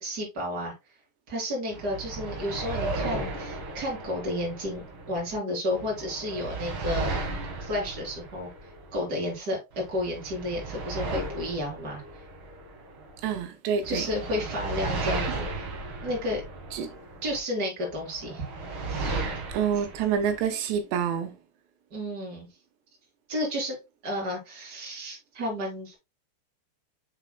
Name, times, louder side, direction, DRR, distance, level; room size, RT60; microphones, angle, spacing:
voice 1, 0.0-0.7 1.3-7.1 7.6-8.5 8.9-12.0 13.8-15.5 16.0-16.4 17.2-18.5 18.9-19.2 21.9-22.5 23.3-23.8 24.0-25.9, left 1 dB, 25° right, 3.3 m, -32 dB
sound 1, 1.7-5.4 5.7-9.4 9.7-13.4 13.8-17.4 17.9-20.4, right 3 dB, 50° right, 1.5 m, -35 dB
voice 2, 13.2-14.1 16.7-16.9 19.5-21.4, right 7 dB, 85° right, 3.2 m, -27 dB
7.3 x 6.6 x 2.2 m
omnidirectional pair, 4.8 m